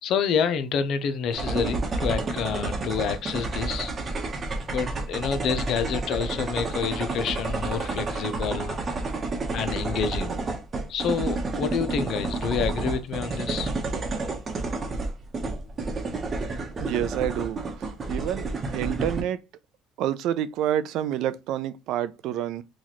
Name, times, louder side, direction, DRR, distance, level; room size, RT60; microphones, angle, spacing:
voice 1, 0.0-3.9 4.7-9.1 9.5-10.3 10.9-13.7, left 6 dB, 60° left, 0.6 m, -28 dB
sound 1, 1.3-19.2, right 3 dB, 35° right, 0.9 m, -30 dB
voice 2, 16.8-17.6 18.1-18.5 18.7-19.4 20.0-22.6, right 11 dB, 70° right, 0.4 m, -28 dB
2.9 x 2.4 x 4.1 m
supercardioid pair, 100°, 0 cm